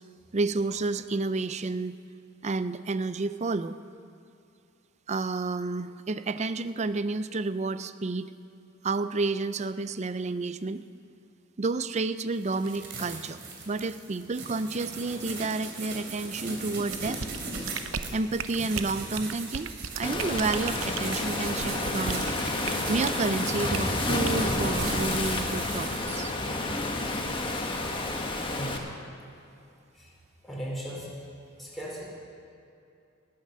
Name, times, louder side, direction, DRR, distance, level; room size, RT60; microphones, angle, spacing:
voice 1, 0.3-2.0 2.4-3.8 5.1-8.3 8.8-10.8 11.6-13.4 13.7-17.2 18.1-22.3 22.9-26.3, right 3 dB, 35° right, 13 dB, 0.5 m, -30 dB
sound 1, 12.3-26.0, right 3 dB, 60° right, 3.0 m, -39 dB
sound 2, 16.9-23.2 23.7-23.9 24.2-24.5, right 6 dB, 90° right, 0.7 m, -36 dB
Waves surf, 20.0-28.8, left 2 dB, 25° left, 1.4 m, -30 dB
voice 2, 28.4-28.8 30.0-30.1 30.4-31.1 31.6-32.1, equal, ahead, -6 dB, 4.2 m, -37 dB
19.0 x 9.5 x 6.7 m, 2.6 s
head